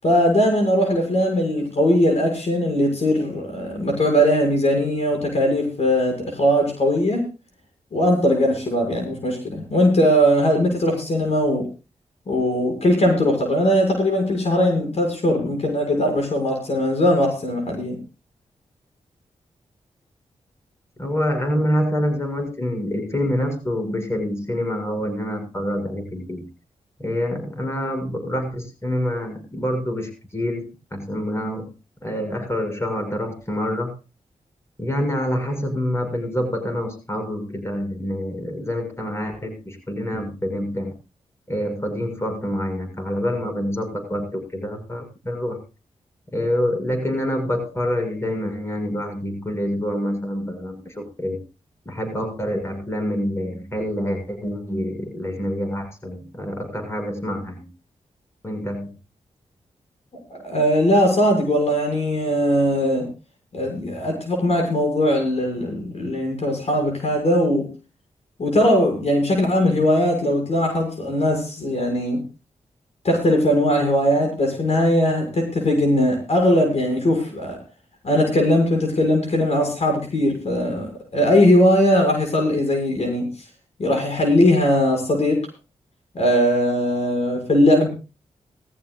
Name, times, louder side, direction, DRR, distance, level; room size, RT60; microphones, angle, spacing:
voice 1, 0.0-7.3 7.9-11.7 12.3-18.0 60.3-63.1 63.5-67.7 68.4-72.2 73.0-77.6 78.0-83.3 83.8-85.4 86.1-87.9, equal, 60° left, 3 dB, 6.5 m, -20 dB
voice 2, 21.0-26.4 27.0-31.7 32.0-33.9 34.8-40.9 41.5-45.6 46.3-51.4 51.8-57.7 58.4-58.9, equal, 20° left, 4 dB, 6.7 m, -26 dB
20.0 x 14.5 x 2.5 m, 0.30 s
cardioid pair, 55°, 12 cm